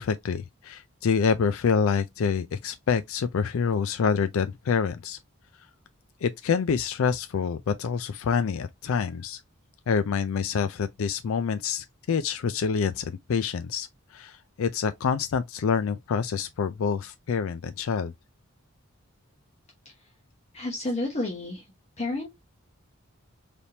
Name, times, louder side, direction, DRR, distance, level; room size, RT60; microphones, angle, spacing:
voice 1, 0.0-5.2 6.2-9.4 9.9-13.9 14.1-18.1, left 6 dB, 70° left, 0.4 m, -27 dB
voice 2, 20.5-21.6 22.0-22.3, left 2 dB, 30° left, 0.9 m, -30 dB
4.3 x 3.4 x 2.7 m
head